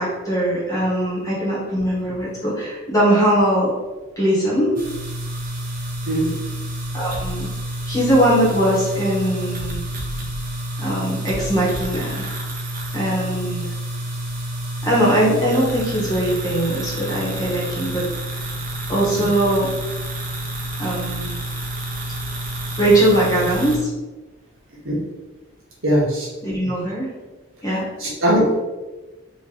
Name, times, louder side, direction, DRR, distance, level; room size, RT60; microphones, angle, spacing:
voice 1, 0.0-3.7 4.2-4.8 6.9-7.5 7.9-9.8 10.8-12.3 12.9-13.7 14.8-18.0 18.9-19.7 20.8-21.4 22.8-23.9 26.4-27.1 27.6-27.9, right 1 dB, 15° left, -7 dB, 1.1 m, -20 dB
sound 1, 4.8-23.8, right 1 dB, 40° right, 0.6 m, -29 dB
voice 2, 25.8-26.3 28.0-28.6, right 1 dB, 70° right, -4 dB, 1.1 m, -19 dB
3.2 x 2.5 x 3.7 m, 1.2 s
head